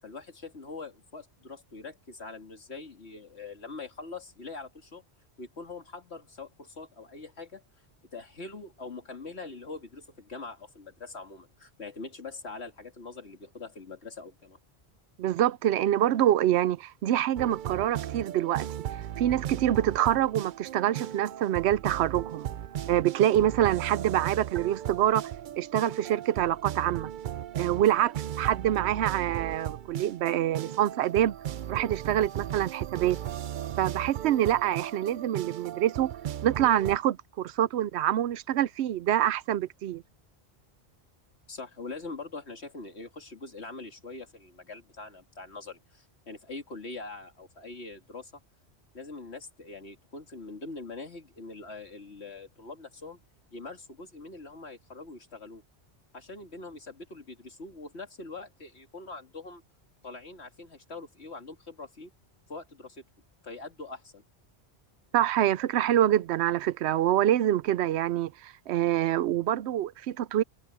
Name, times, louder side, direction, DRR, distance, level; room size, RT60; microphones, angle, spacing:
voice 1, 0.0-5.0 5.4-7.6 8.1-14.6 41.5-48.3 48.9-53.2 53.5-55.6 56.1-59.6 60.0-62.1 62.5-63.0 63.4-64.2, left 3 dB, 80° left, 2.7 m, -43 dB
voice 2, 15.2-18.7 19.2-22.5 22.9-25.2 25.6-27.1 27.5-31.4 31.7-33.2 33.8-36.1 36.4-40.0 65.1-70.4, right 12 dB, 85° right, 0.8 m, -26 dB
sound 1, 17.4-37.0, right 11 dB, 60° right, 0.6 m, -36 dB
omnidirectional pair, 1.1 m